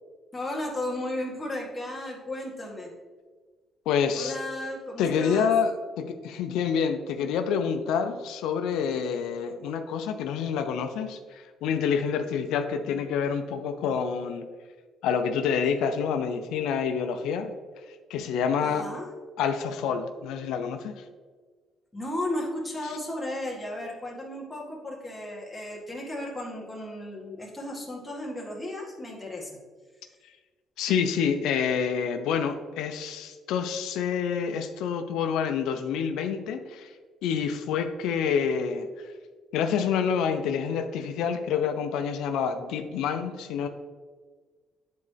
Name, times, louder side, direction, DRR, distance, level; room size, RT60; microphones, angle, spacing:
voice 1, 0.3-2.9 4.1-5.5 18.6-19.0 21.9-29.5, left 1 dB, 10° left, -3 dB, 1.9 m, -34 dB
voice 2, 3.9-4.3 5.0-14.4 15.0-17.5 18.1-18.8 19.4-21.0 30.8-36.9 37.2-38.9 39.5-43.7, left 7 dB, 85° left, 7 dB, 0.5 m, -27 dB
9.6 x 4.2 x 3.4 m, 1.4 s
cardioid pair, 110°, 0 cm